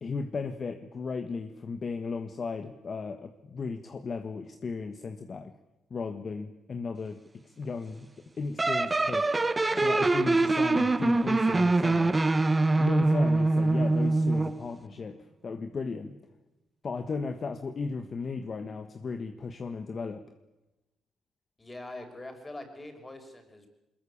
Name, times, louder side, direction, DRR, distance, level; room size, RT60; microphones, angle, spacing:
voice 1, 0.0-5.5 5.9-8.1 8.4-9.3 9.7-12.1 12.8-16.2 16.8-20.3, left 4 dB, 40° left, 8 dB, 1.5 m, -35 dB
sound 1, 8.6-14.6, right 2 dB, 20° right, 1.1 m, -24 dB
voice 2, 21.6-23.7, left 2 dB, 20° left, 6 dB, 5.8 m, -43 dB
22.5 x 21.0 x 8.6 m, 0.98 s
cardioid pair, 90°, 0 cm